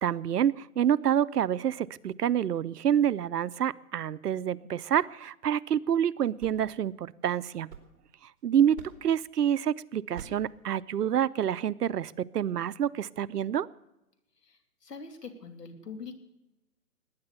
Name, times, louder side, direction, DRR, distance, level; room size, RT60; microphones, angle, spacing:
voice 1, 0.0-7.7 8.4-13.7, right 9 dB, 80° right, 17 dB, 0.8 m, -27 dB
sound 1, 6.1-8.3 8.7-9.2 10.1-10.6, right 6 dB, 35° right, 2.9 m, -48 dB
voice 2, 14.4-16.2, left 5 dB, 90° left, 6 dB, 3.1 m, -43 dB
19.5 x 9.8 x 6.9 m, 0.92 s
hypercardioid pair, 165°, 47 cm